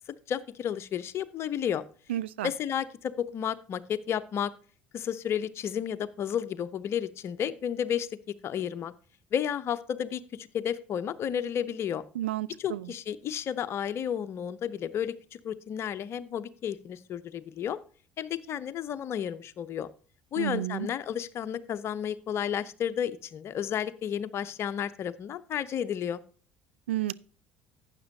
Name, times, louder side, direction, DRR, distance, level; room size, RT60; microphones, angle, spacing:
voice 1, 0.3-1.8 2.4-4.5 4.9-8.1 8.4-8.9 9.3-12.0 12.6-17.8 18.2-19.9 20.3-26.2, left 9 dB, 45° left, 0.7 m, -32 dB
voice 2, 2.1-2.5 12.2-12.8 20.4-20.9 26.9-27.1, right 13 dB, 75° right, 0.3 m, -31 dB
12.0 x 9.0 x 2.7 m
figure-of-eight pair, 60°, 6 cm